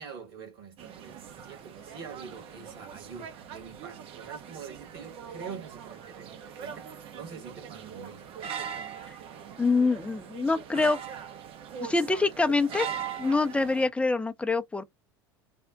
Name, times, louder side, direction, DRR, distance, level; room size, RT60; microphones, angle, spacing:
voice 1, 0.0-8.3, right 6 dB, 65° right, 1.9 m, -45 dB
sound 1, 0.8-13.9, right 8 dB, 45° right, 0.7 m, -41 dB
voice 2, 9.6-11.0 11.8-12.9 13.2-14.8, left 3 dB, 10° left, 0.5 m, -25 dB
3.5 x 2.1 x 3.8 m
figure-of-eight pair, 75°, 13 cm